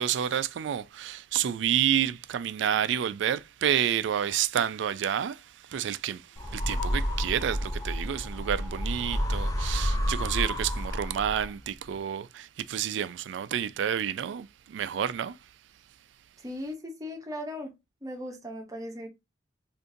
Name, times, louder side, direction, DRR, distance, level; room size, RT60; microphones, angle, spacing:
voice 1, 0.0-15.4, right 9 dB, 70° right, 0.3 m, -29 dB
sound 1, 6.4-11.7, equal, 20° left, 0.5 m, -30 dB
voice 2, 16.4-17.7 18.0-19.1, left 1 dB, 20° right, 0.8 m, -38 dB
3.8 x 2.6 x 2.5 m
head